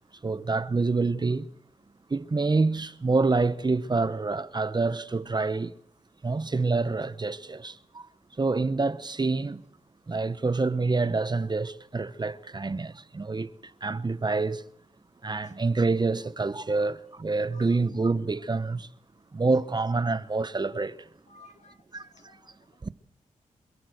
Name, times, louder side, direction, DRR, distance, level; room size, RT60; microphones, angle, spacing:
voice 1, 0.2-1.5 2.1-5.7 6.2-8.1 8.4-9.6 10.1-13.5 13.8-14.6 15.2-18.9 19.3-21.0 21.9-22.1 22.8-22.9, right 3 dB, 35° right, 1.0 m, -27 dB
voice 2, 21.3-22.5, left 3 dB, 65° left, 1.9 m, -55 dB
27.0 x 12.5 x 7.9 m
cardioid pair, 55°, 13 cm